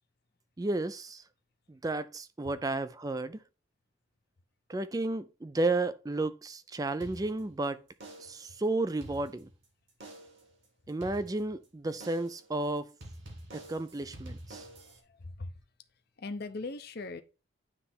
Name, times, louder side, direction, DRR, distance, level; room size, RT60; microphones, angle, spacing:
voice 1, 0.6-1.2 1.7-3.4 4.7-7.8 8.2-9.5 10.9-12.9 13.5-14.7, right 2 dB, 15° right, 0.3 m, -32 dB
sound 1, 7.0-7.6 8.0-8.5 8.9-9.6 10.0-10.5 11.0-11.6 12.0-12.5 13.0-15.0, right 1 dB, 60° right, 2.1 m, -48 dB
voice 2, 15.1-15.5 16.2-17.2, left 3 dB, 50° left, 0.7 m, -39 dB
9.7 x 3.4 x 4.2 m
head